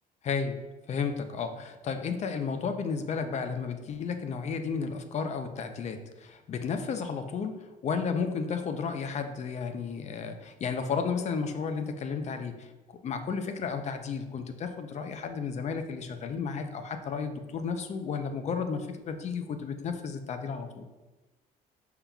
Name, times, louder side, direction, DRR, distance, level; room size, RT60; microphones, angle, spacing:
voice 1, 0.2-0.6 0.9-12.7 13.0-20.9, left 5 dB, 40° left, 7 dB, 0.5 m, -33 dB
5.7 x 3.7 x 2.3 m, 1.1 s
cardioid pair, 110°, 17 cm